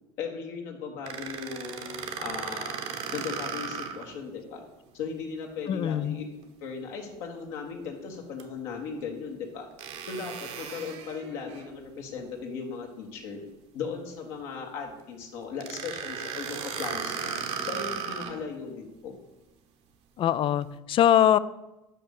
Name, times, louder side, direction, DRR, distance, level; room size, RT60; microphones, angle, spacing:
voice 1, 0.2-2.8 3.1-4.6 4.9-6.2 6.6-9.7 10.1-13.4 13.7-17.3 17.6-19.1, left 5 dB, 75° left, 1 dB, 1.6 m, -37 dB
sound 1, 1.1-4.1 4.6-4.7 8.4-8.5 9.8-11.7 15.6-18.4, right 6 dB, 55° right, 1.0 m, -36 dB
voice 2, 5.7-6.2 20.2-21.4, left 11 dB, 40° left, 17 dB, 0.4 m, -22 dB
5.6 x 5.4 x 6.6 m, 0.98 s
hypercardioid pair, 80°, 13 cm